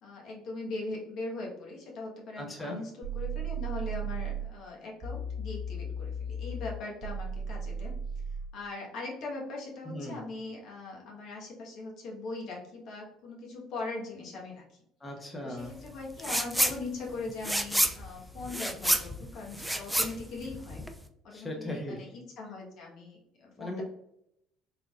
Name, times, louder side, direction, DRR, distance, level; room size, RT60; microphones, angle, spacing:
voice 1, 0.0-7.9 8.5-14.6 15.4-20.8 21.2-23.8, left 3 dB, 60° left, -2 dB, 1.2 m, -40 dB
voice 2, 2.4-2.8 9.8-10.2 15.0-15.7 21.3-22.1 23.6-23.8, left 1 dB, 20° left, 0 dB, 0.9 m, -38 dB
sound 1, 3.0-4.5 5.0-8.5, right 3 dB, 45° right, 0.7 m, -35 dB
sound 2, 16.2-16.8 17.1-21.0, right 1 dB, 5° right, 0.4 m, -29 dB
3.5 x 3.4 x 2.4 m, 0.79 s
hypercardioid pair, 65°, 0 cm